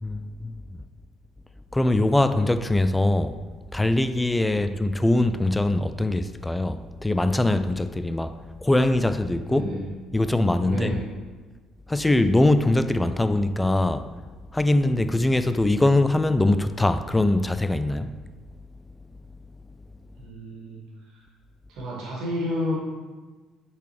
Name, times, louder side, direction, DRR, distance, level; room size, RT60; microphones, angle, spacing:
voice 1, 0.0-0.6 1.7-3.4 3.7-8.4 8.6-9.7 10.1-10.9 11.9-14.0 14.5-18.1, left 2 dB, 10° left, 11 dB, 0.3 m, -22 dB
voice 2, 9.4-9.8 10.6-11.1 20.2-20.8 21.1-21.2 21.7-22.8, left 1 dB, 55° right, -4 dB, 1.9 m, -31 dB
8.0 x 4.0 x 3.2 m, 1.3 s
figure-of-eight pair, 50°, 0 cm